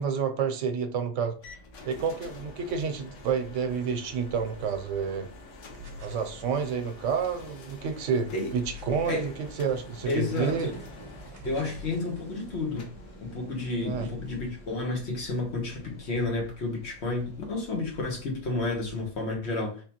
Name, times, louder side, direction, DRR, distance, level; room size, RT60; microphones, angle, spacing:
voice 1, 0.0-1.4 1.8-5.3 6.0-10.7 13.8-14.1, right 6 dB, 90° right, 0.9 m, -29 dB
sound 1, 1.4-19.3, left 2 dB, 90° left, 1.1 m, -48 dB
Vehicle, 5.5-17.8, right 2 dB, 5° left, 1.8 m, -51 dB
sound 2, 5.7-6.3 8.6-9.1 11.4-12.0 13.8-14.6, left 4 dB, 60° right, 0.8 m, -44 dB
voice 2, 10.1-10.7 11.4-12.9 13.2-19.8, left 3 dB, 65° left, 1.3 m, -31 dB
3.5 x 2.9 x 2.8 m
omnidirectional pair, 1.3 m